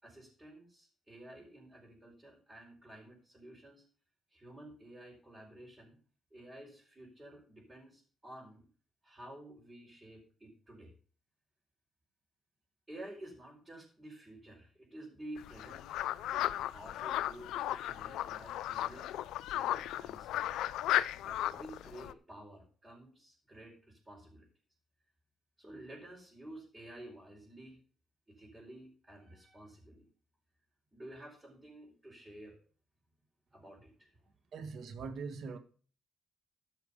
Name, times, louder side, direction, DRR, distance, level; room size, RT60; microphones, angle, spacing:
voice 1, 0.0-3.9 4.3-6.0 6.3-8.7 9.0-10.9 12.9-19.1 19.5-20.6 21.2-24.5 25.6-27.8 28.3-30.0 30.9-32.6 33.5-34.2, right 1 dB, 15° right, 4.8 m, -52 dB
sound 1, 15.4-22.1, left 13 dB, 85° left, 0.4 m, -35 dB
voice 2, 34.5-35.6, right 5 dB, 65° right, 1.8 m, -42 dB
14.0 x 5.8 x 5.5 m
cardioid pair, 90°, 0 cm